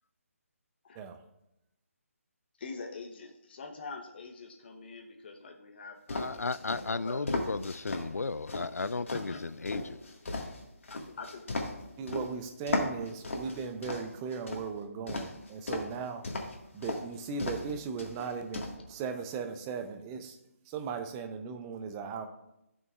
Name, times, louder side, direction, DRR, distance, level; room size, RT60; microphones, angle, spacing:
voice 1, 2.6-6.3 6.7-7.2 9.1-9.4 11.2-11.7, left 3 dB, 45° left, 1.0 m, -44 dB
voice 2, 6.1-10.0 10.9-11.0, left 3 dB, 90° left, 0.3 m, -34 dB
sound 1, 6.1-8.0 8.5-12.3 12.7-14.6 15.1-15.9 16.2-16.6 16.8-17.0 17.4-17.7 18.0-18.7, left 2 dB, 60° left, 1.7 m, -35 dB
voice 3, 12.0-16.2 16.7-20.2 20.7-22.3, right 5 dB, 15° right, 0.5 m, -37 dB
14.0 x 6.3 x 2.4 m
figure-of-eight pair, 155°, 8 cm